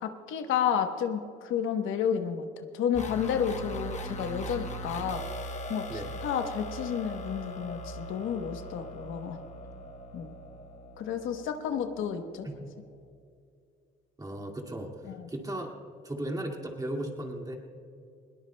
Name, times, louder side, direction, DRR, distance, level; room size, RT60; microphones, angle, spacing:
voice 1, 0.0-2.5 2.7-5.2 5.7-9.4 10.1-10.3 11.0-12.5 15.2-15.3, left 8 dB, 85° left, 7 dB, 1.0 m, -31 dB
sound 1, 2.9-12.5, equal, 35° left, 1.2 m, -40 dB
voice 2, 14.2-15.7 16.0-17.6, right 1 dB, 20° right, 2 dB, 2.0 m, -36 dB
21.0 x 18.5 x 2.2 m, 2.4 s
cardioid pair, 90°, 20 cm